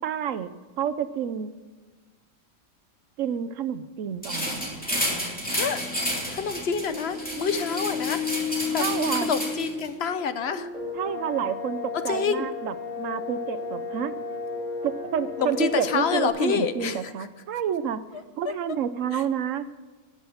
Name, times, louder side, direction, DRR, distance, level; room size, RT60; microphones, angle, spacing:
voice 1, 0.0-1.5 3.2-4.9 8.8-9.3 10.9-14.1 14.8-18.0 18.4-19.7, right 8 dB, 70° right, 13 dB, 1.0 m, -29 dB
sound 1, 4.2-9.9, equal, 5° left, 2.8 m, -31 dB
voice 2, 5.5-5.8 6.3-8.3 8.7-8.9 9.1-10.7 11.9-12.5 15.4-17.1 18.1-18.5 19.1-19.2, left 6 dB, 55° left, 11 dB, 0.9 m, -28 dB
sound 2, 6.9-16.3, left 5 dB, 25° right, 3.3 m, -33 dB
19.0 x 6.4 x 7.0 m, 1.3 s
omnidirectional pair, 1.5 m